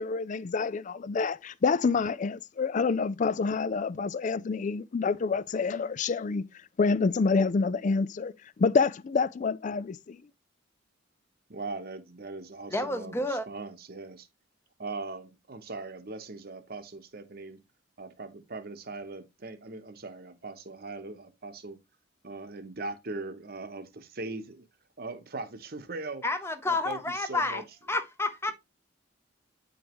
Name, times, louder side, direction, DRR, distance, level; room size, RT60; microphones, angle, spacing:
voice 1, 0.0-6.4 6.8-10.2, left 4 dB, 40° left, 0.4 m, -27 dB
voice 2, 11.5-14.3 14.8-17.6 18.0-21.8 22.2-24.7 25.0-26.2 26.7-27.6, right 3 dB, 50° right, 1.0 m, -40 dB
voice 3, 12.7-13.5 26.2-27.6 27.9-28.5, left 2 dB, 15° left, 0.8 m, -30 dB
8.5 x 5.2 x 3.0 m
head